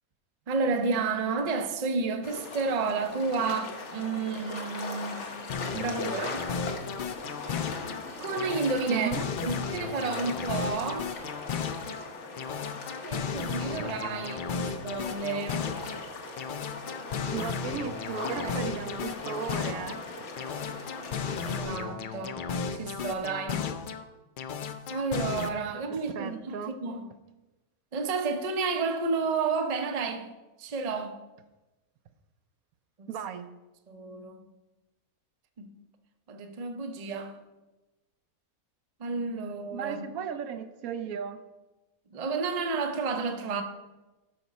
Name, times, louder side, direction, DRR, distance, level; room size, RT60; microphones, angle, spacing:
voice 1, 0.5-5.4 5.7-6.4 8.2-9.1 9.4-11.1 13.1-15.7 18.2-18.8 21.4-22.4 22.7-23.7 24.9-27.1 27.9-30.3 30.6-31.2 33.0-33.1 33.9-34.4 35.6-35.7 36.3-37.4 39.0-40.1 42.1-43.6, right 4 dB, 40° right, 0.6 m, -31 dB
sound 1, 2.2-21.6, left 3 dB, 55° left, 1.2 m, -40 dB
sound 2, 5.5-8.0 8.4-12.0 12.4-16.0 16.4-20.0 20.4-24.0 24.4-25.5, left 6 dB, 80° left, 0.4 m, -34 dB
voice 2, 8.9-9.3 10.3-10.4 17.3-20.0 25.9-26.8 33.1-33.5 39.7-41.4, right 7 dB, 75° right, 1.0 m, -36 dB
12.0 x 6.0 x 4.1 m
omnidirectional pair, 1.6 m